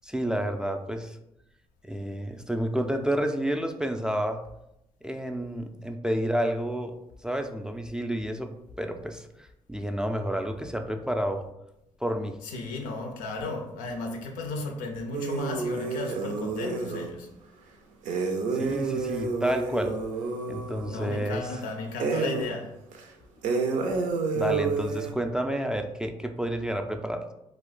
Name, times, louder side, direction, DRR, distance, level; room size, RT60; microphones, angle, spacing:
voice 1, 0.0-1.2 1.8-4.4 5.0-6.9 7.2-8.5 8.8-11.5 12.0-12.4 18.5-19.9 20.5-21.5 24.3-27.3, equal, 5° right, 0.3 m, -30 dB
voice 2, 12.4-17.3 20.9-22.7, left 3 dB, 85° left, 0.5 m, -35 dB
sound 1, 15.1-17.1 18.0-21.6 22.0-22.5 22.9-23.0 23.4-25.1, right 4 dB, 75° right, 0.5 m, -29 dB
2.4 x 2.2 x 3.9 m
supercardioid pair, 55°, 13 cm